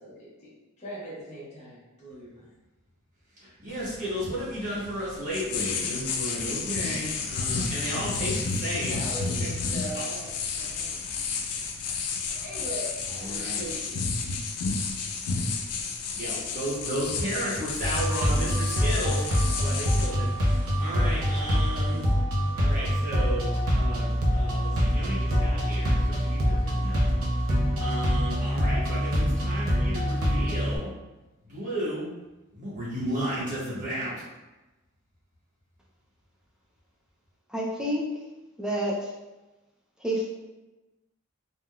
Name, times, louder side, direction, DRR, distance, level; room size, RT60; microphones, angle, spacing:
voice 1, 0.0-2.5 8.6-10.3 10.6-11.4 12.3-14.2, right 1 dB, 30° left, -9 dB, 1.0 m, -40 dB
voice 2, 3.4-9.0 9.9-10.0 13.1-13.6 16.1-22.0 22.5-27.2 27.8-30.9 31.5-32.1 32.5-34.1, equal, 35° right, -8 dB, 1.0 m, -33 dB
sound 1, 3.7-22.1, left 4 dB, 90° left, 0.4 m, -32 dB
sound 2, 17.8-30.8, equal, 75° right, 0.7 m, -25 dB
voice 3, 37.5-38.0 38.6-39.1 40.0-40.3, equal, 5° right, -4 dB, 0.4 m, -28 dB
3.5 x 2.3 x 2.2 m, 1.1 s
head